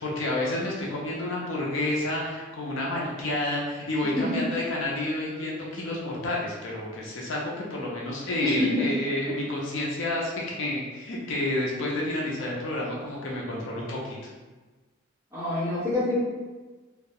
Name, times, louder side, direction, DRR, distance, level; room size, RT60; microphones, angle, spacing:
voice 1, 0.0-14.2, left 1 dB, 65° left, -3 dB, 0.5 m, -30 dB
voice 2, 8.4-8.9 15.3-16.2, left 2 dB, 15° right, -10 dB, 0.7 m, -26 dB
2.2 x 2.1 x 2.7 m, 1.3 s
head